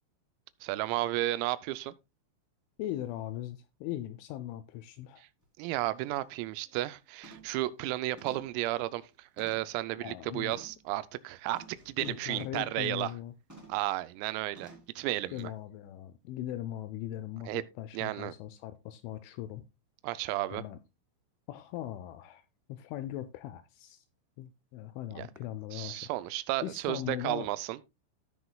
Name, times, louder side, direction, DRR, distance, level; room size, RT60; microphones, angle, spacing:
voice 1, 0.6-1.9 5.6-13.1 13.7-15.5 17.5-17.6 17.9-18.3 20.0-20.6 25.2-25.3 25.7-27.8, right 16 dB, 85° right, 3.3 m, -33 dB
voice 2, 2.8-5.2 10.0-10.6 12.0-13.3 15.3-19.6 20.5-20.8 21.5-22.4 22.7-24.0 24.4-26.1 26.6-27.5, left 13 dB, 85° left, 2.8 m, -39 dB
sound 1, 5.4-5.5 6.0-6.2 6.6-6.9 7.2-7.6 8.2-9.8 10.5-10.8 11.5-12.8 13.5-13.9 14.5-15.0 15.4-15.5, right 2 dB, 10° right, 0.9 m, -53 dB
16.0 x 6.3 x 2.3 m
omnidirectional pair, 6.0 m